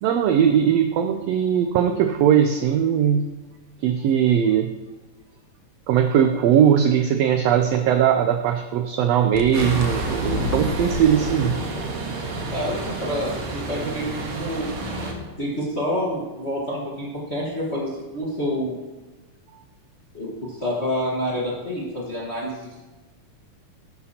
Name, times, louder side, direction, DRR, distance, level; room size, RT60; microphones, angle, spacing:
voice 1, 0.0-3.3 3.8-4.7 5.9-11.6, right 9 dB, 85° right, 6 dB, 1.4 m, -19 dB
sound 1, 9.3-11.0, left 6 dB, 70° left, 1.3 m, -30 dB
sound 2, 9.5-15.1, right 3 dB, 55° right, 1.8 m, -29 dB
voice 2, 12.5-14.7 15.4-18.8 20.1-22.8, equal, 35° left, -4 dB, 1.0 m, -28 dB
12.5 x 9.8 x 2.9 m, 1.2 s
omnidirectional pair, 3.5 m